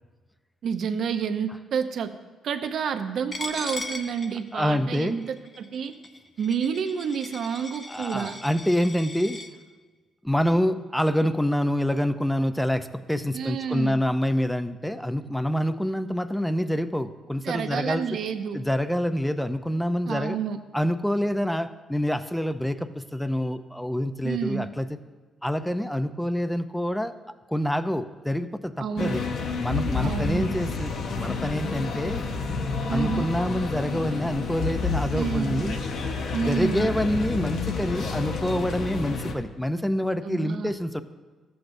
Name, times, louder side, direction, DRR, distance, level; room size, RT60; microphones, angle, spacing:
voice 1, 0.6-2.1 2.4-5.9 6.4-8.4 13.3-14.0 17.4-18.7 20.1-20.6 24.2-24.7 28.8-29.2 30.0-30.5 32.9-33.3 35.1-35.7 36.3-36.9 40.2-40.7, right 7 dB, 65° right, 7 dB, 0.7 m, -29 dB
Coin (dropping), 3.3-9.5, left 2 dB, 30° left, 0.8 m, -39 dB
voice 2, 4.5-5.2 7.9-9.4 10.2-18.0 18.5-20.4 20.7-25.0 25.4-27.2 27.5-29.2 29.6-32.2 32.9-35.8 36.5-41.0, equal, 5° left, 12 dB, 0.5 m, -26 dB
sound 1, 29.0-39.3, left 4 dB, 70° left, 0.9 m, -30 dB
14.0 x 7.9 x 2.6 m, 1.4 s
cardioid pair, 90°, 0 cm